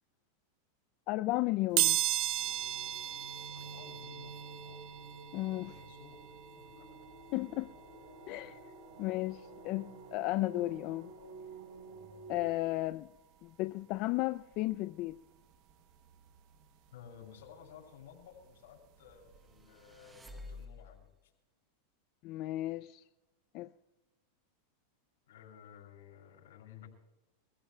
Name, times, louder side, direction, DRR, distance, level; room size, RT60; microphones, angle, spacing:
voice 1, 1.1-2.0 5.3-5.7 7.3-7.7 8.3-8.6 9.0-11.1 12.3-13.1 13.4-15.2 22.2-23.0 23.5-23.7, left 18 dB, 50° left, 0.5 m, -34 dB
sound 1, 1.8-12.4 12.9-13.0 14.1-14.3 14.5-16.6 17.0-19.6 20.0-20.1 20.5-20.6, right 13 dB, 50° right, 1.1 m, -38 dB
sound 2, 2.4-12.6, right 3 dB, 75° right, 4.8 m, -51 dB
voice 2, 3.5-4.8 5.6-6.2 6.5-7.1 8.9-9.0 16.9-21.3 25.3-26.9, left 8 dB, 85° left, 6.7 m, -55 dB
sound 3, 19.4-21.2, left 2 dB, 10° right, 1.2 m, -50 dB
26.5 x 16.5 x 2.4 m
supercardioid pair, 135°, 0 cm